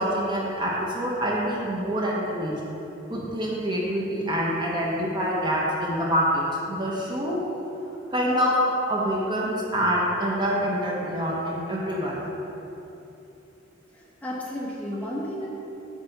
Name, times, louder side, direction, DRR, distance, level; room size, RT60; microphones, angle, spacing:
voice 1, 0.0-2.6 3.1-7.4 8.1-8.5 8.9-12.2, equal, 25° right, -4 dB, 1.0 m, -26 dB
voice 2, 13.9-15.5, equal, 10° left, -6 dB, 1.0 m, -33 dB
8.5 x 3.5 x 6.6 m, 3.0 s
head